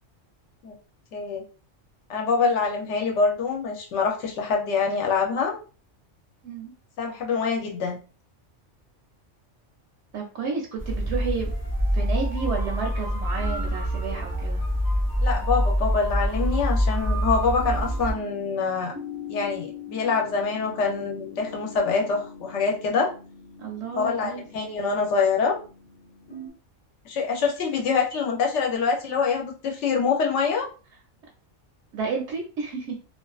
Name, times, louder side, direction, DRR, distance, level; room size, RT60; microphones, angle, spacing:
voice 1, 1.1-1.4 2.1-5.5 7.0-8.0 15.2-18.9 19.3-23.1 24.0-25.6 27.0-30.7, left 5 dB, 70° left, 2 dB, 0.9 m, -25 dB
voice 2, 10.1-11.5 11.9-14.6 23.6-24.4 31.9-32.9, right 5 dB, 70° right, 0 dB, 0.8 m, -31 dB
sound 1, 10.8-18.1, equal, 25° right, 0.5 m, -25 dB
sound 2, 16.8-26.5, left 4 dB, 45° left, 0.7 m, -43 dB
2.5 x 2.3 x 2.3 m, 0.37 s
omnidirectional pair, 1.3 m